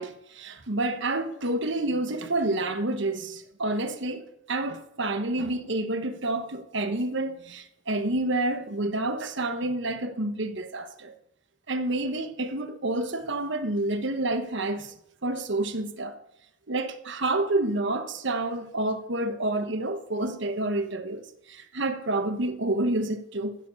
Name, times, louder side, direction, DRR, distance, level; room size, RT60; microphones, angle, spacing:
voice 1, 0.0-11.1 11.7-14.9 15.2-16.2 16.7-23.6, right 2 dB, 65° right, 1.2 m, -29 dB
15.0 x 7.1 x 7.1 m
head